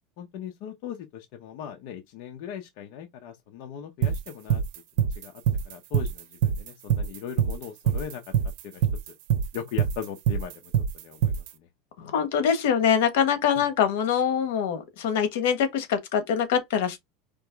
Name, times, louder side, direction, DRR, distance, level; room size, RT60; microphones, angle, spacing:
voice 1, 0.2-4.6 5.0-8.2 8.7-8.9 9.5-11.7 13.5-13.6, left 8 dB, 60° left, 0.9 m, -39 dB
sound 1, 4.0-11.5, right 8 dB, 65° right, 0.9 m, -24 dB
voice 2, 12.0-17.0, left 8 dB, 75° left, 1.3 m, -24 dB
5.2 x 3.0 x 3.4 m
supercardioid pair, 150°, 0 cm